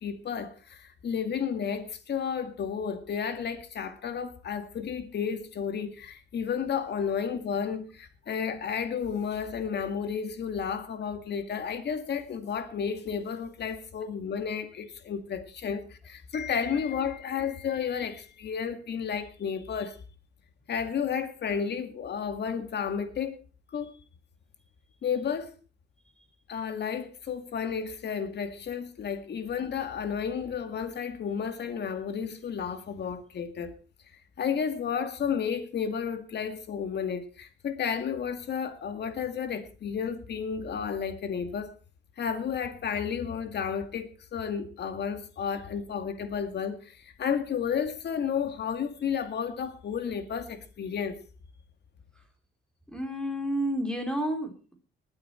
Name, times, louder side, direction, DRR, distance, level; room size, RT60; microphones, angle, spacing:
voice 1, 0.0-20.0 20.7-23.4 23.7-23.9 25.0-25.5 26.5-33.7 34.4-41.8 42.2-51.2, left 7 dB, 55° left, 2.1 m, -32 dB
voice 2, 52.9-54.7, equal, 5° left, 3.8 m, -30 dB
19.5 x 8.9 x 4.4 m
cardioid pair, 90°, 20 cm